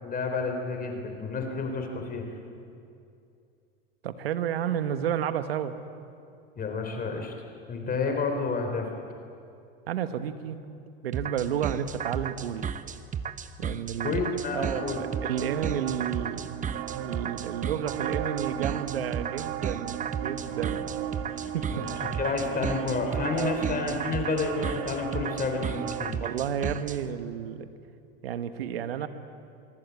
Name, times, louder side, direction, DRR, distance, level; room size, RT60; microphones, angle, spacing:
voice 1, 0.0-2.3 6.6-7.3 7.7-8.9 14.0-15.0 21.7-26.2, left 4 dB, 30° left, 3 dB, 3.9 m, -30 dB
voice 2, 4.0-5.8 9.9-10.6 11.0-12.7 13.6-14.2 14.5-21.0 21.5-21.8 23.3-23.5 26.2-27.7 28.2-29.1, right 9 dB, 90° right, 10 dB, 1.5 m, -31 dB
sound 1, 11.1-27.0, right 7 dB, 25° right, 1.1 m, -33 dB
sound 2, 14.8-26.1, right 11 dB, 65° right, 1.4 m, -36 dB
sound 3, 20.1-26.0, left 7 dB, 50° left, 4.5 m, -50 dB
24.5 x 23.0 x 8.4 m, 2.5 s
hypercardioid pair, 95°, 29 cm